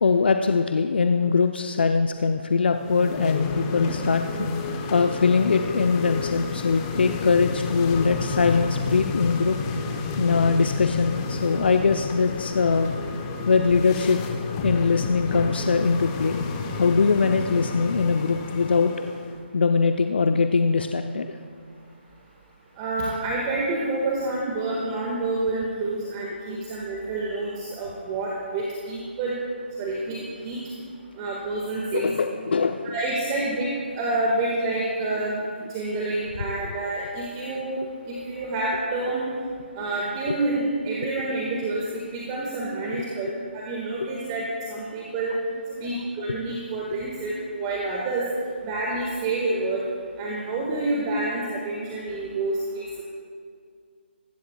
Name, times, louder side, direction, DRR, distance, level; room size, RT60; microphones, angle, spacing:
voice 1, 0.0-4.6 4.9-9.6 10.2-12.9 13.5-14.2 14.6-16.4 16.7-18.9 19.5-21.4 26.5-26.6 31.9-32.9 40.3-40.4 45.8-46.0 46.3-46.4, left 5 dB, 60° left, 7 dB, 0.6 m, -22 dB
sound 1, 2.7-19.3, left 4 dB, 20° left, 1.0 m, -30 dB
voice 2, 22.8-29.4 29.8-30.2 30.4-30.6 31.2-32.1 32.8-35.3 35.7-39.3 39.8-41.8 42.1-45.4 45.8-48.2 48.6-49.8 50.2-53.0, right 2 dB, 20° right, -4 dB, 1.8 m, -28 dB
22.5 x 12.5 x 2.4 m, 2.2 s
figure-of-eight pair, 150°, 6 cm